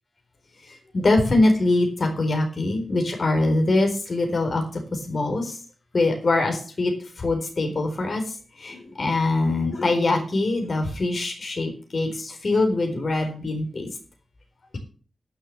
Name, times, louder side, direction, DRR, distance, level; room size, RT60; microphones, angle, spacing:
voice 1, 0.9-4.6 4.9-5.6 5.9-6.9 7.2-8.2 8.6-13.9, left 2 dB, 45° left, 4 dB, 4.1 m, -23 dB
11.5 x 6.8 x 7.6 m, 0.40 s
wide cardioid pair, 120°, 0 cm